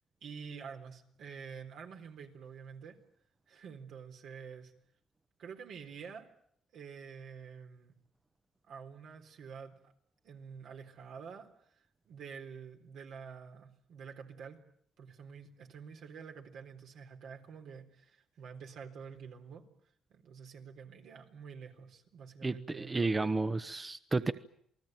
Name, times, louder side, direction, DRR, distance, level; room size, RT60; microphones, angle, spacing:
voice 1, 0.2-3.0 3.5-4.7 5.4-6.3 6.7-7.9 8.7-9.9 10.2-11.7 12.1-14.6 15.0-19.6 20.1-23.4, right 6 dB, 75° right, 3 dB, 3.9 m, -48 dB
voice 2, 22.4-24.3, right 3 dB, 25° right, 10 dB, 1.1 m, -32 dB
28.0 x 19.5 x 9.3 m, 0.69 s
cardioid pair, 90°, 0 cm